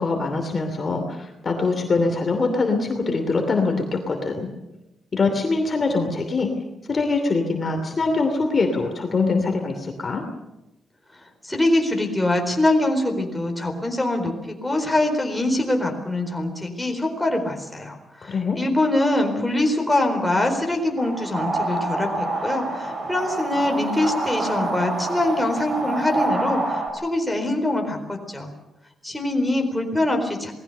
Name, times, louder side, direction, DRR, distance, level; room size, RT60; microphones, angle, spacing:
voice 1, 0.0-4.5 5.1-6.5 6.9-10.2 18.2-18.6, left 3 dB, 30° left, 4 dB, 2.8 m, -23 dB
voice 2, 11.4-28.5 29.0-30.5, left 1 dB, 5° left, 2 dB, 4.2 m, -23 dB
sound 1, 21.0-26.9, right 2 dB, 45° right, 5.2 m, -27 dB
27.5 x 19.5 x 6.8 m, 0.95 s
wide cardioid pair, 150°, 0 cm